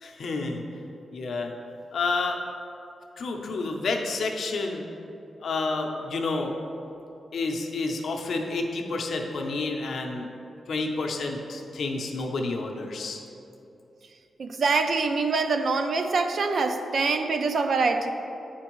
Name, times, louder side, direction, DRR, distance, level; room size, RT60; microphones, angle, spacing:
voice 1, 0.0-0.6 1.1-1.5 1.9-2.4 3.2-4.8 5.4-6.6 7.3-10.3 10.7-13.2, left 3 dB, 65° left, 2 dB, 0.6 m, -29 dB
voice 2, 14.4-18.1, right 4 dB, 55° right, 7 dB, 0.4 m, -24 dB
9.3 x 4.3 x 3.0 m, 2.8 s
wide cardioid pair, 155°, 0 cm